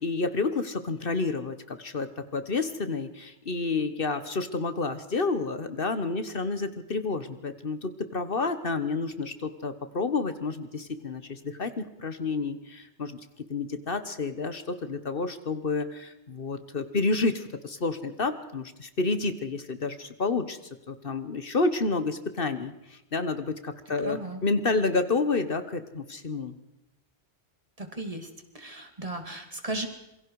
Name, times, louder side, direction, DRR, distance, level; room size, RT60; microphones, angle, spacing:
voice 1, 0.0-13.2 13.5-20.6 20.9-26.5, left 3 dB, 60° left, 10 dB, 1.4 m, -30 dB
voice 2, 24.0-24.4 27.8-28.3 28.5-29.9, right 2 dB, 35° right, 5 dB, 2.7 m, -35 dB
27.0 x 23.0 x 4.8 m, 0.89 s
omnidirectional pair, 1.1 m